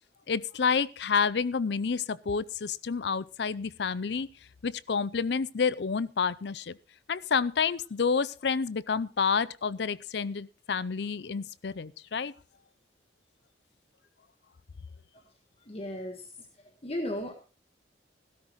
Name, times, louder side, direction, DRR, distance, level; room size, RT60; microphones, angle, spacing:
voice 1, 0.3-4.3 4.6-6.8 7.1-12.3, left 5 dB, 65° left, 19 dB, 0.5 m, -29 dB
voice 2, 15.7-16.2 16.8-17.3, left 1 dB, 35° left, 4 dB, 1.5 m, -34 dB
16.0 x 13.0 x 3.1 m, 0.32 s
head